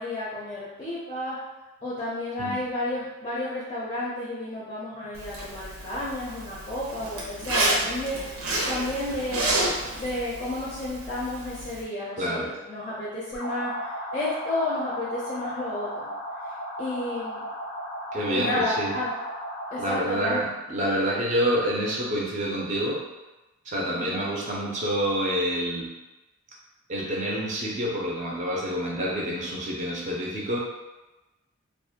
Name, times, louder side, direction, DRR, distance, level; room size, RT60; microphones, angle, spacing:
voice 1, 0.0-1.4 1.8-9.5 10.0-16.1 16.8-17.4 18.3-19.1 19.7-20.4 23.9-24.2, left 1 dB, 25° left, -7 dB, 0.4 m, -31 dB
Zipper (clothing), 5.1-11.8, right 1 dB, 85° right, 0.6 m, -30 dB
voice 2, 12.2-12.6 18.1-19.0 19.8-23.1 23.7-26.0 26.9-30.6, equal, 35° right, -4 dB, 0.4 m, -27 dB
sound 1, 13.3-20.1, equal, 85° left, 0.6 m, -35 dB
2.4 x 2.2 x 2.7 m, 1.1 s
head